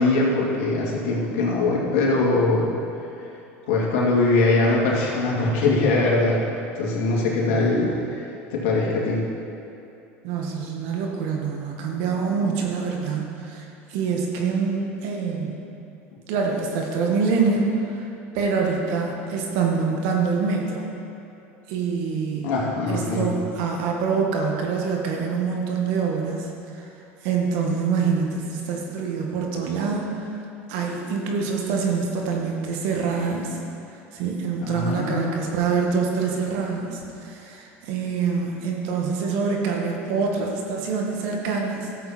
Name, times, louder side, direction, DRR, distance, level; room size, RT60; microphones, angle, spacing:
voice 1, 0.0-2.7 3.7-6.4 6.7-8.2 8.5-9.2 22.4-23.3 34.6-35.3, left 2 dB, 70° left, -3 dB, 2.5 m, -22 dB
voice 2, 10.2-15.6 16.3-18.1 18.3-20.9 21.7-22.5 22.9-26.9 27.2-30.3 30.7-33.6 34.1-42.1, right 5 dB, 70° right, 0 dB, 1.9 m, -25 dB
13.5 x 7.7 x 4.4 m, 2.8 s
hypercardioid pair, 85°, 7 cm